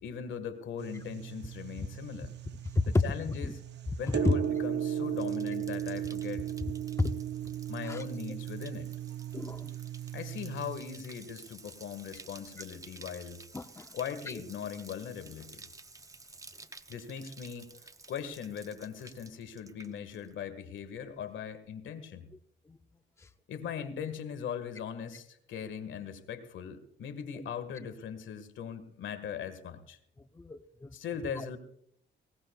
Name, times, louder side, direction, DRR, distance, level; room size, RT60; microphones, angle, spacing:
voice 1, 0.0-2.3 2.9-3.6 4.0-6.5 7.7-8.9 10.1-13.4 13.9-15.7 16.9-17.7 18.1-22.3 23.5-30.0 30.9-31.6, left 7 dB, 75° left, 11 dB, 1.6 m, -40 dB
sound 1, 0.8-10.8, right 10 dB, 60° right, 0.7 m, -36 dB
Bathtub (filling or washing), 4.4-20.5 20.8-21.3, right 3 dB, 15° right, 0.8 m, -53 dB
voice 2, 9.3-9.7 13.5-13.9 22.7-22.8 30.4-30.9 31.4-31.5, left 3 dB, 15° left, 10 dB, 0.6 m, -30 dB
20.5 x 18.5 x 2.3 m, 0.69 s
cardioid pair, 90°, 20 cm